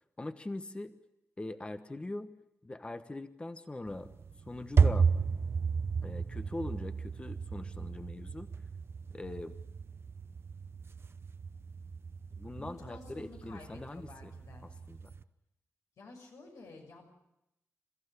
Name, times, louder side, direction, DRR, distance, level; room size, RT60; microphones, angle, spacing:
voice 1, 0.2-0.9 1.4-2.3 2.6-4.1 4.5-5.1 6.0-8.5 9.1-9.6 12.4-14.3 14.6-15.1, left 2 dB, 20° left, 9 dB, 1.2 m, -42 dB
sound 1, 3.9-15.2, right 5 dB, 50° right, 0.8 m, -33 dB
voice 2, 12.6-14.7 16.0-17.1, left 3 dB, 85° left, 0 dB, 6.3 m, -51 dB
29.0 x 14.5 x 9.8 m, 0.87 s
wide cardioid pair, 115°, 5 cm